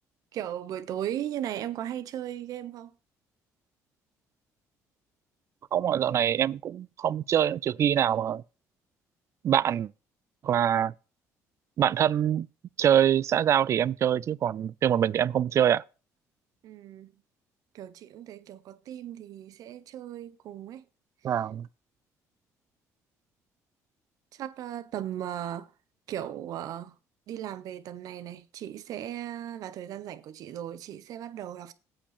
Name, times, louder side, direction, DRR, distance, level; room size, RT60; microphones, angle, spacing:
voice 1, 0.3-2.9 16.6-17.1 17.7-20.8 24.3-25.7 26.1-27.0 27.3-31.7, right 11 dB, 70° right, 1.0 m, -37 dB
voice 2, 5.7-8.4 9.4-9.9 10.4-10.9 11.8-12.5 12.8-15.8 21.2-21.7, right 10 dB, 50° right, 0.3 m, -24 dB
8.6 x 5.2 x 6.7 m
cardioid pair, 105°, 6 cm